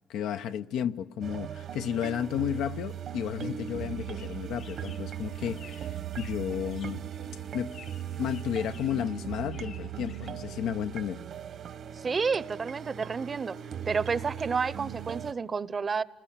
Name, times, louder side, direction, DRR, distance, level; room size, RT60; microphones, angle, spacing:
voice 1, 0.1-7.0 7.5-7.8 8.2-11.2, left 9 dB, 90° left, 0.8 m, -32 dB
sound 1, 1.2-15.3, right 10 dB, 65° right, 1.3 m, -39 dB
sound 2, 3.9-10.9, left 7 dB, 70° left, 2.4 m, -54 dB
voice 2, 12.0-13.6 13.9-16.0, right 5 dB, 40° right, 0.8 m, -30 dB
29.0 x 20.5 x 8.6 m
cardioid pair, 90°, 0 cm